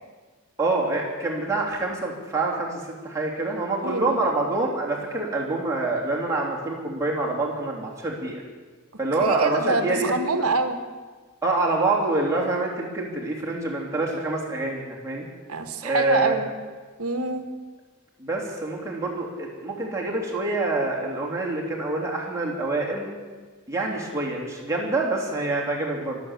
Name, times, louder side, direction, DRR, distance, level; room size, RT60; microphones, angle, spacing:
voice 1, 0.6-8.4 9.0-10.1 11.4-15.3 15.8-16.4 18.2-23.1 23.7-26.2, right 2 dB, 15° right, -3 dB, 3.2 m, -26 dB
voice 2, 3.8-4.2 9.2-10.8 15.5-16.5 17.0-17.5, right 3 dB, 75° right, 8 dB, 1.5 m, -25 dB
24.0 x 8.2 x 7.4 m, 1.4 s
head